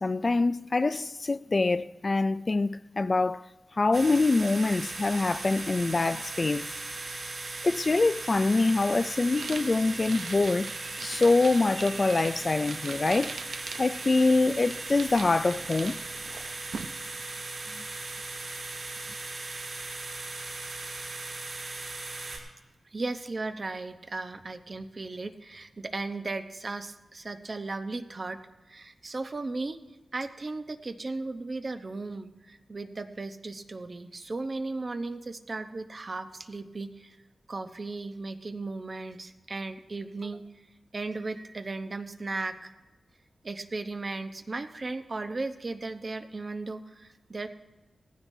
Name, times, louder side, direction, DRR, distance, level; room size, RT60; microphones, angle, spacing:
voice 1, 0.0-3.4 3.8-6.6 7.6-10.7 11.0-13.4 13.8-16.0, left 3 dB, 40° left, 0.3 m, -25 dB
sound 1, 3.9-22.4, right 3 dB, 65° right, 5.4 m, -38 dB
sound 2, 9.3-16.9, right 5 dB, 90° right, 0.7 m, -42 dB
voice 2, 22.9-28.4 28.7-29.8 30.1-37.2 37.5-40.4 40.9-42.7 43.4-47.5, right 3 dB, 45° right, 0.8 m, -36 dB
17.5 x 15.5 x 2.7 m
wide cardioid pair, 75°, 0 cm